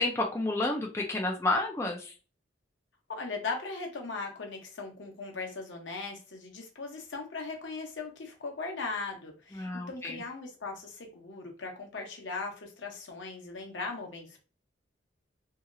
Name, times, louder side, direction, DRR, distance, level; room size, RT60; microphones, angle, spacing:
voice 1, 0.0-2.1 9.5-10.2, left 2 dB, 15° left, 0 dB, 0.4 m, -30 dB
voice 2, 3.1-14.4, left 3 dB, 75° left, 2 dB, 0.8 m, -39 dB
2.8 x 2.8 x 2.5 m, 0.35 s
head